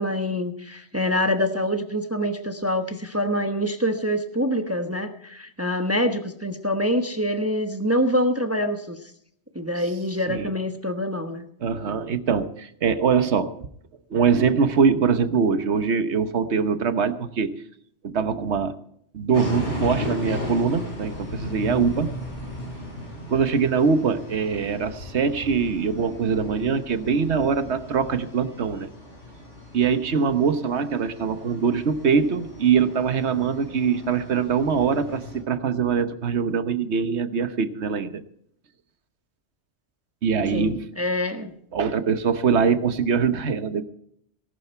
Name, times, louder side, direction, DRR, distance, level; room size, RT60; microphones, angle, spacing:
voice 1, 0.0-9.0 9.5-11.5 40.5-41.5, equal, 15° right, 7 dB, 1.0 m, -25 dB
voice 2, 11.6-13.5 14.1-17.6 18.0-18.7 19.1-22.1 23.3-28.9 29.7-38.2 40.2-40.8 41.7-43.8, right 6 dB, 75° right, 11 dB, 1.3 m, -23 dB
sound 1, 19.3-35.4, left 2 dB, 90° left, 6.0 m, -36 dB
18.5 x 11.5 x 4.5 m, 0.68 s
omnidirectional pair, 1.2 m